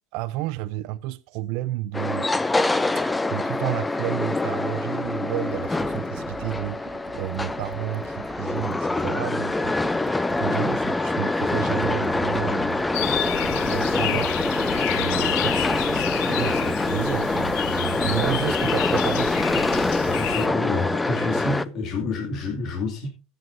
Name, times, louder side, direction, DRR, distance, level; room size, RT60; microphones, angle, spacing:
voice 1, 0.1-2.3 2.6-2.7 2.9-9.8 10.0-12.8 13.4-14.3 14.9-19.7, right 16 dB, 65° right, 0.6 m, -31 dB
sound 1, 1.9-21.6, left 2 dB, 10° left, 0.4 m, -25 dB
Computer keyboard, 5.0-9.2 9.5-14.8, right 7 dB, 40° right, 1.8 m, -44 dB
sound 2, 12.9-20.5, left 15 dB, 70° left, 0.7 m, -30 dB
voice 2, 20.0-23.1, left 3 dB, 45° left, 2.4 m, -28 dB
15.5 x 7.7 x 2.6 m
supercardioid pair, 135°, 0 cm